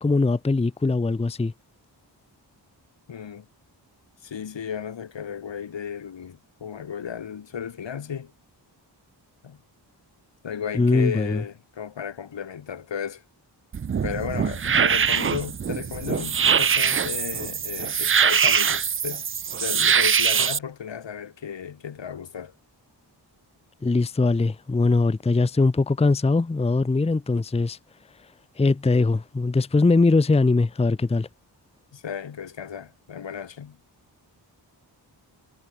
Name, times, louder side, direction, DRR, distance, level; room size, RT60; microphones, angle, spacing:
voice 1, 0.0-1.5 10.7-11.4 23.8-27.8 28.6-31.3, left 3 dB, 15° left, 0.6 m, -21 dB
voice 2, 3.1-3.5 4.2-8.3 9.4-9.6 10.4-13.2 14.0-19.2 19.6-22.5 31.9-33.8, left 7 dB, 80° left, 2.4 m, -34 dB
sound 1, 13.7-20.6, right 7 dB, 30° right, 0.4 m, -23 dB
cardioid pair, 70°, 43 cm